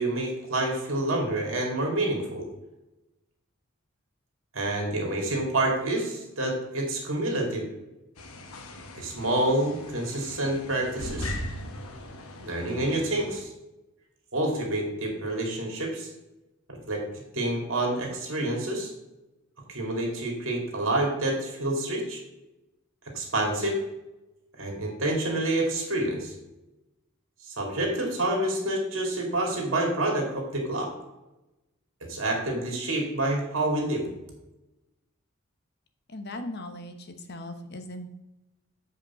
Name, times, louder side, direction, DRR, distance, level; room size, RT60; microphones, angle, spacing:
voice 1, 0.0-2.5 4.5-7.7 9.0-11.3 12.4-13.5 14.3-16.1 16.7-17.0 17.3-18.9 19.7-22.2 23.1-23.8 24.6-26.3 27.5-30.9 32.1-34.1, right 1 dB, 65° right, 0 dB, 2.4 m, -28 dB
sound 1, 8.2-13.4, left 1 dB, 90° left, 1.1 m, -39 dB
voice 2, 36.1-38.1, left 1 dB, 50° left, 6 dB, 1.0 m, -38 dB
8.3 x 5.1 x 4.3 m, 0.99 s
head